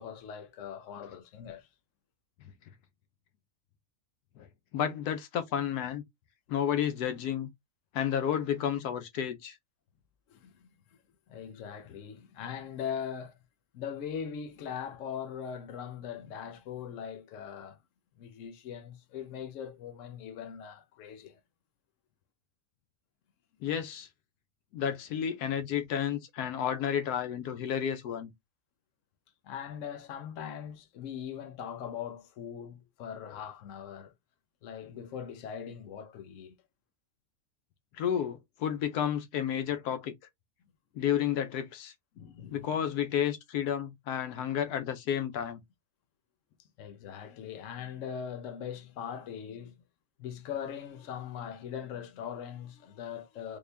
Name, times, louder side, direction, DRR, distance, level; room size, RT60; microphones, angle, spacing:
voice 1, 0.0-1.7 10.3-11.0 11.3-13.4 13.7-17.8 18.2-21.4 29.4-34.1 34.6-36.6 42.1-42.7 46.8-49.8 50.2-53.6, left 8 dB, 60° left, 1.0 m, -41 dB
voice 2, 4.7-6.0 6.5-7.5 7.9-9.6 23.6-24.1 24.7-28.3 37.9-40.2 40.9-41.9 42.5-45.6, left 9 dB, 90° left, 1.2 m, -31 dB
3.6 x 2.3 x 3.3 m
omnidirectional pair, 1.6 m